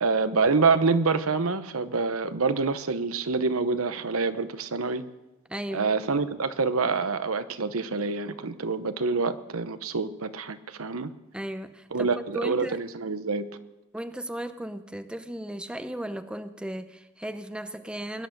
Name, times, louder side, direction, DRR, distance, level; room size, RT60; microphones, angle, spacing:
voice 1, 0.0-5.0 5.7-11.1 11.9-13.5, right 4 dB, 75° right, 0.9 m, -26 dB
voice 2, 5.5-5.9 11.3-12.8 13.9-18.3, right 1 dB, 5° right, 0.6 m, -36 dB
19.5 x 11.0 x 6.6 m
head